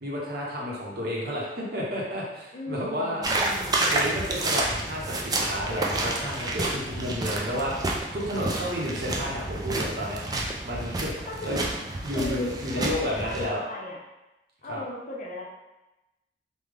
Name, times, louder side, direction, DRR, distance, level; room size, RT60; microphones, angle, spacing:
voice 1, 0.0-3.2 3.7-10.2 10.6-11.6 12.0-13.6 14.7-14.8, equal, 60° right, -4 dB, 0.9 m, -31 dB
voice 2, 2.5-3.8 11.3-11.8 12.1-13.4 13.7-14.0 14.6-15.4, left 2 dB, 45° left, -2 dB, 0.6 m, -37 dB
sound 1, 3.2-13.4, right 2 dB, 20° right, 0.3 m, -29 dB
3.6 x 2.2 x 3.3 m, 0.98 s
head